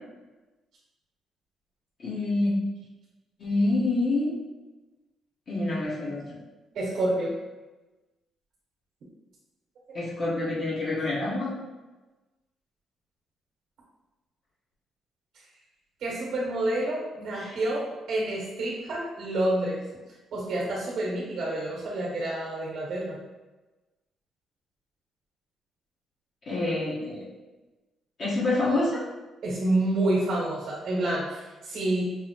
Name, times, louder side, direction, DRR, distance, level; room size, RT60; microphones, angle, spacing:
voice 1, 2.0-2.5 3.4-4.3 5.5-6.2 9.9-11.5 17.3-17.5 26.5-27.2 28.2-29.0, left 2 dB, 55° left, -8 dB, 1.1 m, -27 dB
voice 2, 6.7-7.3 9.9-10.0 16.0-19.8 20.3-23.2 29.4-32.1, right 1 dB, 70° right, -5 dB, 1.1 m, -28 dB
5.3 x 2.0 x 2.8 m, 1.1 s
cardioid pair, 90°, 0 cm